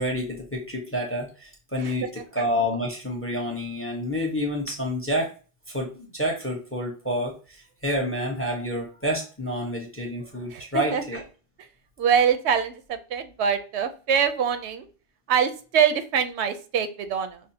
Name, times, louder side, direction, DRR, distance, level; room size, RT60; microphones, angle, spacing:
voice 1, 0.0-5.3 5.7-11.2, equal, 15° left, 1 dB, 0.6 m, -29 dB
voice 2, 10.5-11.0 12.0-14.9 15.3-17.4, right 7 dB, 85° right, 10 dB, 0.9 m, -24 dB
5.6 x 2.0 x 2.7 m, 0.36 s
omnidirectional pair, 1.1 m